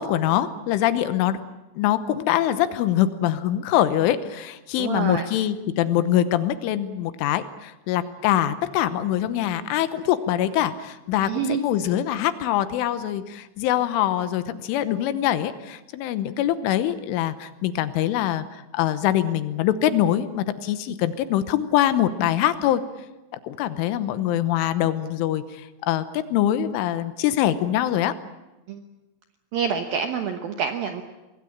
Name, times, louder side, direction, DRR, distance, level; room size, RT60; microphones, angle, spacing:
voice 1, 0.0-1.4 1.8-11.3 11.6-22.8 23.4-28.1, left 12 dB, 75° left, 12 dB, 3.4 m, -23 dB
voice 2, 4.8-5.2 11.3-11.6 28.7-28.8 29.5-31.0, right 7 dB, 75° right, 6 dB, 2.2 m, -27 dB
24.5 x 19.5 x 8.7 m, 1.0 s
omnidirectional pair, 5.9 m